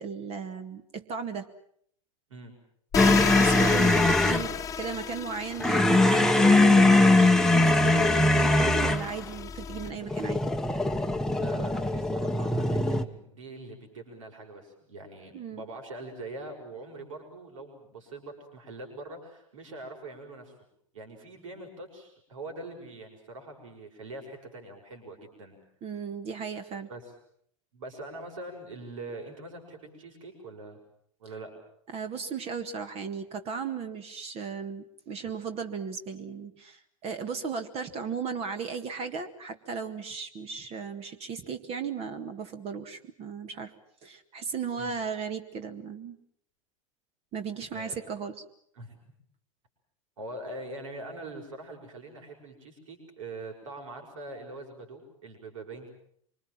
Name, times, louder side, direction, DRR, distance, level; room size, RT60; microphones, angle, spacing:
voice 1, 0.0-1.5 3.0-10.5 15.3-15.6 25.8-26.9 31.9-43.7 44.0-46.2 47.3-48.4, right 6 dB, 35° right, 8 dB, 1.9 m, -36 dB
sound 1, 2.9-9.9, left 8 dB, 20° left, 1.4 m, -34 dB
sound 2, 3.0-4.5 5.6-9.1 10.0-13.0, left 2 dB, 5° left, 1.2 m, -21 dB
voice 2, 11.4-20.5 20.9-25.6 26.9-27.1 27.7-30.8 31.2-31.5 44.8-44.9 47.7-48.0 48.8-49.0 50.2-55.9, right 2 dB, 70° right, 3 dB, 6.1 m, -43 dB
25.5 x 25.0 x 7.6 m, 0.66 s
figure-of-eight pair, 90°, 17 cm